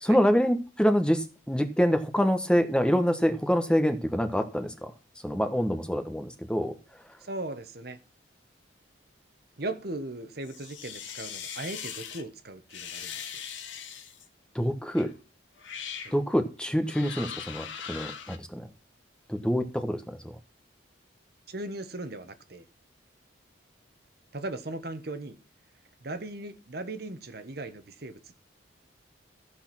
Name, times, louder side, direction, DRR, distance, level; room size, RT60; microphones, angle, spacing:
voice 1, 0.0-4.9 5.2-6.8 14.5-15.1 16.1-18.6 19.3-20.2, equal, 5° left, 1.2 m, -26 dB
voice 2, 7.2-8.0 9.6-13.3 16.0-16.1 21.5-22.6 24.3-25.4 26.0-28.4, right 2 dB, 55° right, 1.2 m, -38 dB
sound 1, 10.4-12.2 12.7-14.3 15.0-15.1 15.6-16.2 16.9-18.4, left 7 dB, 80° left, 1.9 m, -40 dB
14.0 x 6.3 x 6.0 m
head